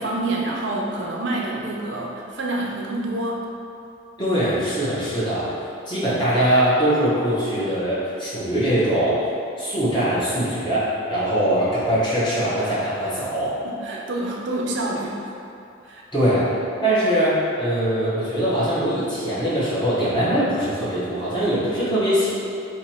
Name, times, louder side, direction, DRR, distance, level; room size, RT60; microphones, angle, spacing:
voice 1, 0.0-3.5 13.6-15.3 15.8-16.0, right 2 dB, 65° right, -2 dB, 0.6 m, -27 dB
voice 2, 4.2-5.6 5.9-9.2 9.6-13.5 16.1-16.5 16.8-22.3, right 1 dB, 25° left, -11 dB, 1.1 m, -22 dB
3.1 x 3.0 x 4.3 m, 2.6 s
head